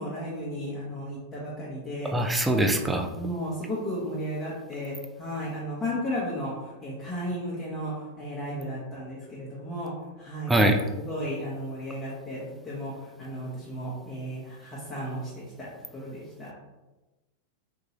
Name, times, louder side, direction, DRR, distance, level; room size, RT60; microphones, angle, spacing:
voice 1, 0.0-2.1 2.5-2.9 3.1-9.9 10.2-10.7 11.0-15.3 15.6-16.5, equal, 20° left, -7 dB, 1.0 m, -34 dB
voice 2, 2.1-3.1 10.5-10.8, right 1 dB, 10° right, 4 dB, 0.4 m, -22 dB
3.6 x 2.9 x 2.9 m, 1.1 s
figure-of-eight pair, 90°, 0 cm